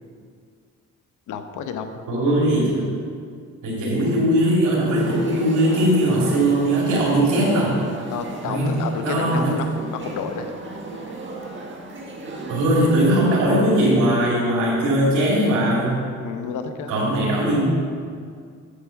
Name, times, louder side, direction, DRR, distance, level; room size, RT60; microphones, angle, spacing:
voice 1, 1.3-2.1 8.1-10.5 16.2-16.9, left 6 dB, 80° left, 7 dB, 0.9 m, -31 dB
voice 2, 2.1-2.9 3.6-7.8 8.4-9.6 12.5-16.0 16.9-17.7, right 1 dB, 80° right, -6 dB, 2.8 m, -20 dB
sound 1, 4.9-13.4, right 2 dB, 40° right, 1.7 m, -35 dB
8.4 x 8.1 x 5.8 m, 2.1 s
cardioid pair, 90°, 30 cm